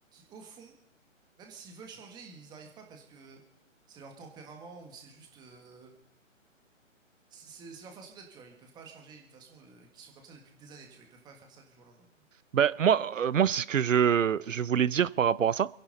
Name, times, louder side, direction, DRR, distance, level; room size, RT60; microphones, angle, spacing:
voice 1, 0.1-0.7 1.4-3.4 3.9-5.9 7.3-12.1, right 4 dB, 10° right, 3 dB, 1.7 m, -50 dB
voice 2, 12.5-15.7, right 8 dB, 70° right, 21 dB, 0.7 m, -25 dB
27.5 x 11.0 x 4.1 m, 0.71 s
figure-of-eight pair, 145°, 40 cm